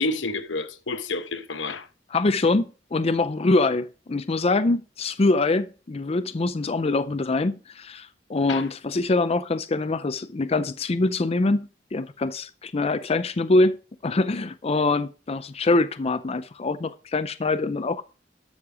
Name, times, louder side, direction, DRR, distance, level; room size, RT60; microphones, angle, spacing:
voice 1, 0.0-1.9 8.5-8.6, left 3 dB, 90° left, 1.1 m, -29 dB
voice 2, 2.1-13.8 14.0-18.0, left 2 dB, 35° left, 0.5 m, -24 dB
12.5 x 6.5 x 4.9 m
head